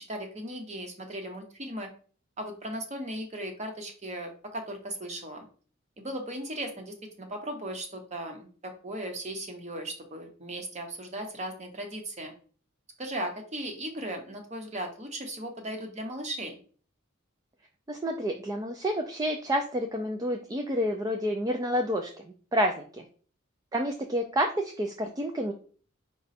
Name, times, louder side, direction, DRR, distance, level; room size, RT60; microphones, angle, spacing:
voice 1, 0.0-1.9 2.4-5.5 6.0-12.3 13.0-16.6, right 1 dB, 35° right, 4 dB, 0.9 m, -37 dB
voice 2, 17.9-23.0 23.7-25.5, equal, 15° right, 3 dB, 0.3 m, -29 dB
5.0 x 2.3 x 4.1 m, 0.42 s
head